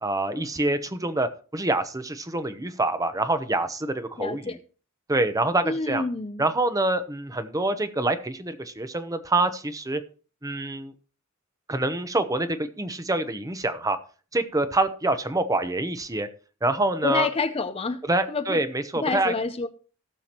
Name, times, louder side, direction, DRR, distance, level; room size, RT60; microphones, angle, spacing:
voice 1, 0.0-4.5 5.1-6.0 6.4-10.0 10.4-10.9 11.7-14.0 14.3-16.3 16.6-17.3 18.1-19.3, right 2 dB, 15° right, 0.8 m, -26 dB
voice 2, 4.2-4.6 5.6-6.5 17.0-18.0 18.3-18.6 18.9-19.7, left 3 dB, 25° left, 0.6 m, -28 dB
17.5 x 7.0 x 3.0 m
head